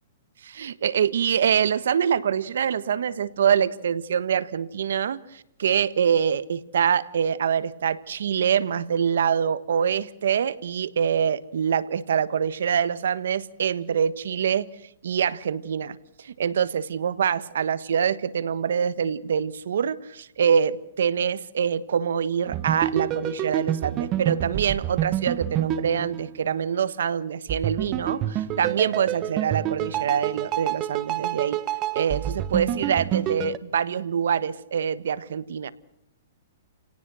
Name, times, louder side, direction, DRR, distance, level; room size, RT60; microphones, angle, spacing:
voice 1, 0.4-14.7 15.0-31.6 31.9-35.7, right 7 dB, 75° right, 16 dB, 1.4 m, -25 dB
background music, 22.5-26.8 27.5-33.6, right 12 dB, 25° right, 1.1 m, -28 dB
29.5 x 18.0 x 6.3 m, 0.79 s
hypercardioid pair, 150°, 0 cm